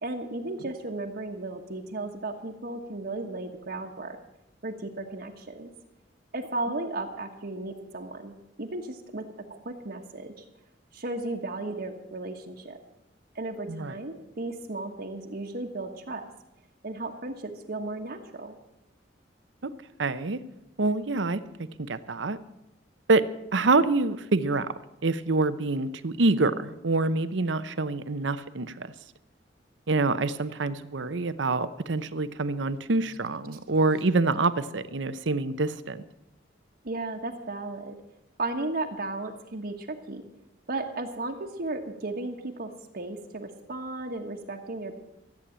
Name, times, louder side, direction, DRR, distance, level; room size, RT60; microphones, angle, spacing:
voice 1, 0.0-4.2 4.6-5.7 6.3-9.2 9.5-10.4 10.9-12.8 13.3-16.3 16.8-18.6 36.8-38.0 38.4-40.2 40.7-44.9, right 2 dB, 55° right, 1 dB, 1.3 m, -35 dB
voice 2, 20.0-20.4 20.8-21.4 21.9-22.4 23.1-23.2 23.5-24.7 25.0-28.9 29.9-36.0, right 3 dB, 75° right, 13 dB, 0.8 m, -26 dB
14.5 x 8.5 x 8.7 m, 0.89 s
head